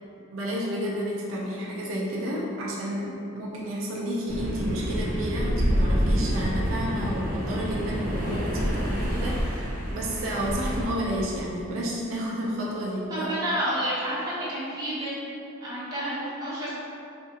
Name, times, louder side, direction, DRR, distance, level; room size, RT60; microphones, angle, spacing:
voice 1, 0.3-13.3, equal, 75° right, -4 dB, 0.4 m, -31 dB
sound 1, 4.3-10.9, equal, 45° right, 0.9 m, -27 dB
voice 2, 13.1-15.2 15.6-16.7, right 1 dB, 20° right, -11 dB, 0.9 m, -30 dB
3.5 x 2.4 x 2.7 m, 2.6 s
head